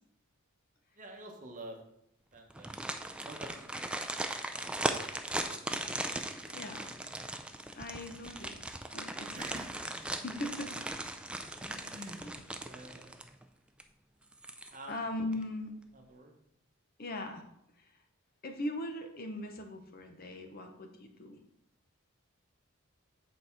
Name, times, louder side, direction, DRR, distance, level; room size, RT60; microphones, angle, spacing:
voice 1, 1.0-1.8 2.3-2.7 3.2-4.3 9.3-9.9 11.6-12.4 12.6-13.4 14.7-14.9 15.9-16.3, right 1 dB, 35° right, 3 dB, 1.0 m, -48 dB
sound 1, 2.5-13.4 13.8-13.9 14.3-15.0 15.3-15.4, right 1 dB, 5° right, 0.3 m, -38 dB
voice 2, 6.5-6.9 7.8-8.6 8.9-9.4 10.2-10.7 12.2-12.3 14.9-15.7 17.0-17.5 17.8-17.9 18.4-21.4, left 1 dB, 45° left, 5 dB, 0.8 m, -39 dB
7.7 x 4.2 x 4.4 m, 0.77 s
head